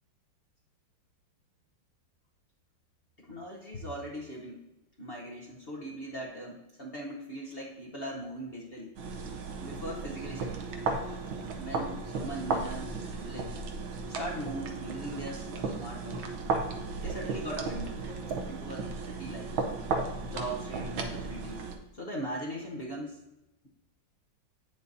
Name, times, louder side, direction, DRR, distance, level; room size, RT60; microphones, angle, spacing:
voice 1, 3.2-4.6 5.0-9.0 9.6-10.7 11.6-13.5 14.2-16.3 17.0-18.0 18.5-19.5 20.3-21.6 21.9-23.2, right 1 dB, 50° left, -3 dB, 0.6 m, -40 dB
sound 1, 9.0-21.8, right 4 dB, 75° right, 1.5 m, -35 dB
8.3 x 6.7 x 2.6 m, 0.96 s
omnidirectional pair, 2.2 m